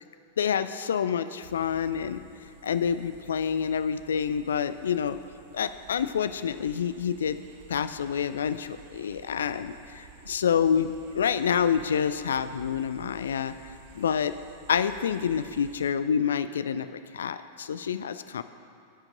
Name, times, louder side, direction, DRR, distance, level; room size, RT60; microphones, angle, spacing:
voice 1, 0.4-2.2 2.6-5.2 5.5-7.4 7.7-13.5 13.9-14.3 14.7-18.4, left 7 dB, 65° left, 12 dB, 0.3 m, -27 dB
sound 1, 1.4-15.9, right 6 dB, 55° right, 0.7 m, -52 dB
15.5 x 7.2 x 2.6 m, 2.4 s
figure-of-eight pair, 90°, 0 cm